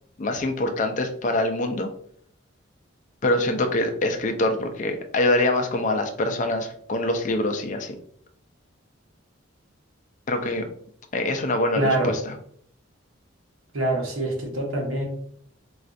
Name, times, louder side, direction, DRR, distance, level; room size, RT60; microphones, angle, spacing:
voice 1, 0.2-1.9 3.2-8.0 10.3-10.7 11.1-12.4, left 1 dB, 40° left, 5 dB, 0.4 m, -24 dB
voice 2, 11.8-12.1 13.7-15.0, right 2 dB, 85° right, 0 dB, 1.0 m, -24 dB
4.2 x 2.4 x 2.5 m, 0.63 s
head